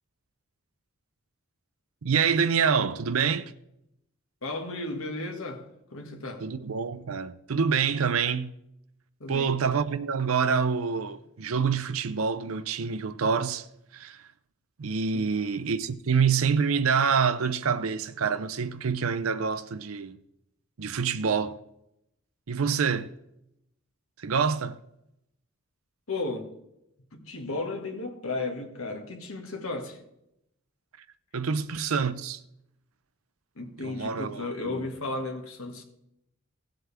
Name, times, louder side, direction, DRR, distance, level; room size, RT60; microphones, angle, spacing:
voice 1, 2.0-3.5 6.4-8.5 9.3-13.7 13.9-14.2 14.8-20.2 20.8-21.6 22.5-23.1 24.2-24.8 31.3-32.4 33.8-34.9, right 6 dB, 85° right, 0.6 m, -26 dB
voice 2, 4.4-6.4 9.2-9.6 15.1-15.4 26.1-26.5 27.1-30.0 33.5-35.8, left 2 dB, 80° left, 1.7 m, -34 dB
16.0 x 7.7 x 3.4 m
head